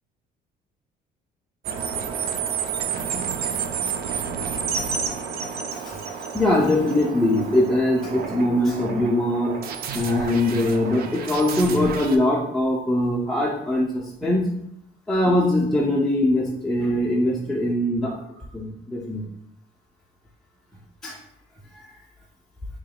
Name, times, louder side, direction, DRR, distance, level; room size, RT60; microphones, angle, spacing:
sound 1, 1.6-12.2, right 6 dB, 65° right, 0.5 m, -30 dB
voice 1, 6.3-9.6 9.9-14.5 15.1-18.2 18.5-19.2 21.0-21.2, left 1 dB, 5° left, -4 dB, 0.6 m, -22 dB
4.6 x 2.9 x 2.4 m, 0.75 s
cardioid pair, 110°, 17 cm